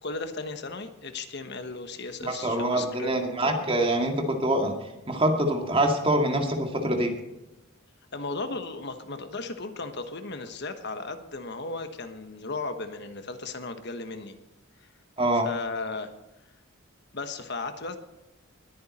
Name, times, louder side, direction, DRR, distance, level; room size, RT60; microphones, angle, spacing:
voice 1, 0.0-3.1 3.4-3.6 8.1-14.3 15.4-16.1 17.1-18.0, left 3 dB, 55° left, 8 dB, 1.3 m, -35 dB
voice 2, 2.2-4.7 5.1-7.1 15.2-15.5, right 1 dB, 25° right, 3 dB, 2.0 m, -25 dB
21.0 x 9.2 x 4.3 m, 0.96 s
head